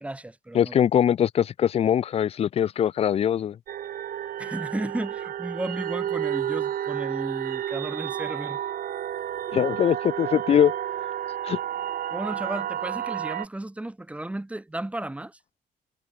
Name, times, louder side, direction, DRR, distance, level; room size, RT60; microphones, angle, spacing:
voice 1, 0.0-0.8 4.4-8.6 12.1-15.4, right 1 dB, 10° right, 2.1 m, -34 dB
voice 2, 0.5-3.6 9.5-10.7 11.4-11.6, left 9 dB, 40° left, 0.4 m, -22 dB
sound 1, 3.7-13.5, right 10 dB, 60° right, 2.9 m, -31 dB
cardioid pair, 150°, 17 cm